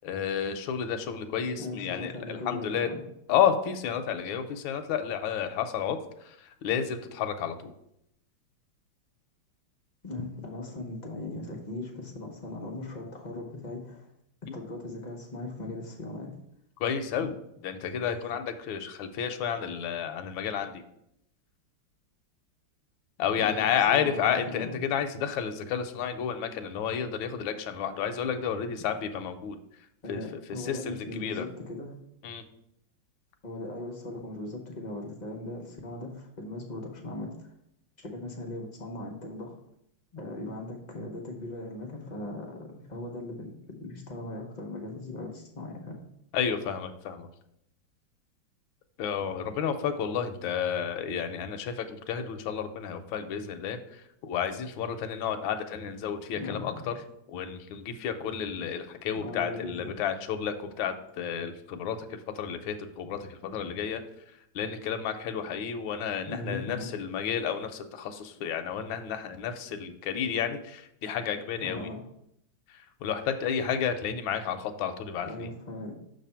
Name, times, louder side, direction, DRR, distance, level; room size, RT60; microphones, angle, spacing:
voice 1, 0.0-2.9 3.3-6.0 6.3-6.4 6.6-7.7 16.8-17.3 17.6-20.8 23.2-29.6 30.1-30.2 30.6-31.4 32.2-32.4 46.3-47.3 49.0-53.8 54.2-56.9 57.3-64.0 64.5-71.9 73.0-75.5, left 8 dB, 80° left, 7 dB, 1.4 m, -31 dB
voice 2, 1.6-3.0 10.0-14.1 14.5-16.3 17.2-17.3 23.4-24.8 30.0-31.9 33.4-37.5 38.0-39.6 40.1-43.5 43.8-46.0 56.4-56.8 59.1-59.9 66.2-66.9 71.6-72.1 75.3-75.9, left 2 dB, 55° left, 1 dB, 0.4 m, -39 dB
6.5 x 3.3 x 5.5 m, 0.78 s
omnidirectional pair, 2.2 m